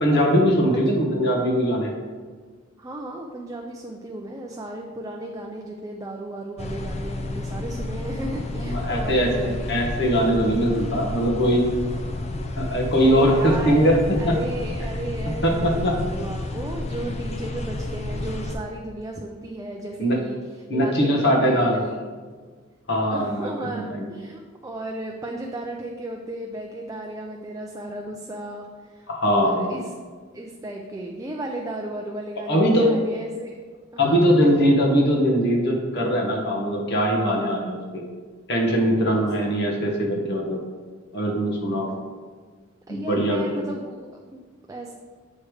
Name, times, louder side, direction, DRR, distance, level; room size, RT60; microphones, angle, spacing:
voice 1, 0.0-1.9 8.6-11.6 12.6-14.4 15.4-16.0 20.0-20.2 20.7-21.8 22.9-24.1 29.1-29.8 32.4-33.0 34.0-38.0 38.5-40.6 41.1-41.9 42.9-43.6, equal, 60° left, -1 dB, 1.4 m, -21 dB
voice 2, 2.8-9.6 13.0-13.9 14.2-20.4 20.7-22.4 23.1-29.9 30.3-33.5 33.9-34.3 39.0-39.2 41.9-42.0 42.9-44.9, right 1 dB, 20° right, 0 dB, 0.5 m, -35 dB
sound 1, 6.6-18.6, left 2 dB, 35° left, 0.6 m, -31 dB
8.3 x 3.3 x 4.8 m, 1.5 s
head